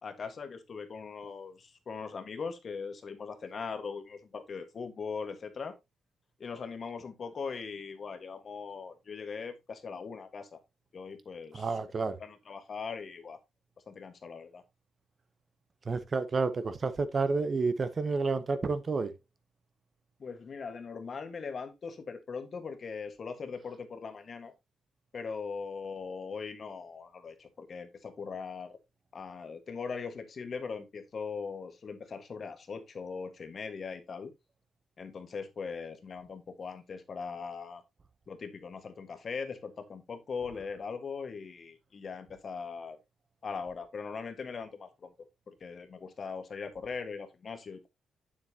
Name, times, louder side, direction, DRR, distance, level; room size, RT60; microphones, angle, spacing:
voice 1, 0.0-5.7 6.4-10.6 10.9-11.8 12.2-13.4 13.9-14.6 20.2-24.5 25.1-28.8 29.1-34.3 35.0-37.8 38.3-43.0 43.4-45.1 45.5-47.9, left 5 dB, 40° left, 1.4 m, -40 dB
voice 2, 11.5-12.2 15.9-19.1, right 4 dB, 30° right, 0.7 m, -30 dB
8.8 x 7.5 x 2.8 m
cardioid pair, 145°, 0 cm